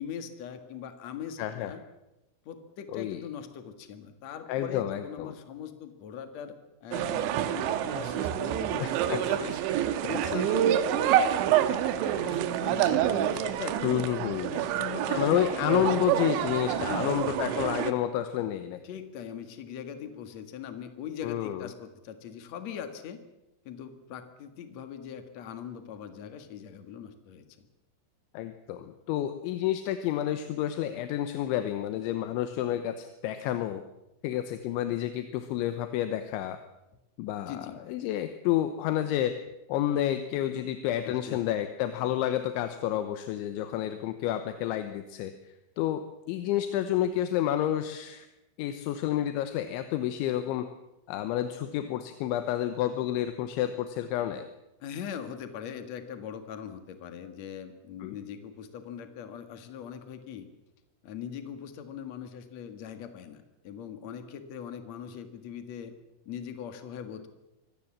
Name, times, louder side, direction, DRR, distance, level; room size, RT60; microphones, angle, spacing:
voice 1, 0.0-1.8 2.5-9.6 10.1-13.8 14.5-16.0 16.7-17.2 18.8-23.2 23.6-27.7 37.4-37.8 41.0-41.4 54.8-60.5 61.0-65.9 66.3-67.3, left 8 dB, 60° left, 8 dB, 1.8 m, -41 dB
voice 2, 1.4-1.7 2.9-3.2 4.5-5.3 8.8-9.2 10.0-10.4 13.8-14.5 15.2-18.8 21.2-21.7 28.3-33.8 34.2-36.6 37.2-37.6 37.9-39.3 39.7-45.3 45.8-46.0 46.3-48.3 48.6-50.7 51.1-54.5 58.0-58.2, left 12 dB, 75° left, 9 dB, 3.2 m, -30 dB
sound 1, 6.9-17.9, right 10 dB, 75° right, 3.2 m, -27 dB
24.5 x 18.0 x 7.5 m, 0.96 s
omnidirectional pair, 5.8 m